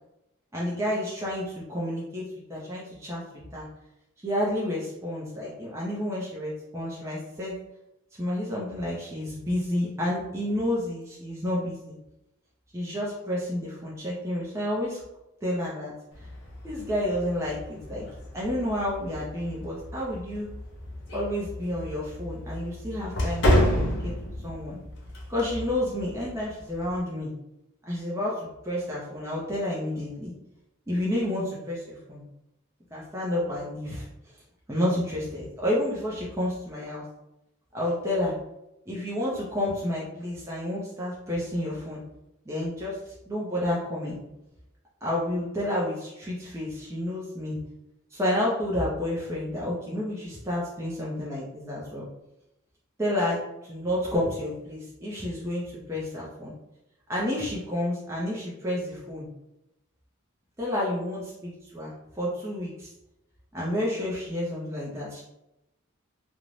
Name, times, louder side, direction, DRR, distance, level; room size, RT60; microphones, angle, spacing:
voice 1, 0.5-2.2 2.5-3.2 3.5-3.7 4.2-7.6 8.2-12.0 12.7-15.0 15.4-15.9 16.2-16.3 16.6-18.1 18.3-20.5 21.1-23.4 23.7-24.1 24.4-24.8 25.3-27.3 27.9-28.3 28.6-30.3 30.9-32.3 32.9-34.1 34.7-37.0 37.7-38.3 38.9-42.0 42.5-44.2 45.0-47.6 48.1-52.1 53.0-56.5 57.1-59.3 60.6-62.9 63.5-65.2, left 1 dB, 10° right, -6 dB, 0.4 m, -30 dB
sound 1, 16.1-27.0, left 1 dB, 55° left, 0.6 m, -31 dB
2.5 x 2.0 x 3.1 m, 0.90 s
head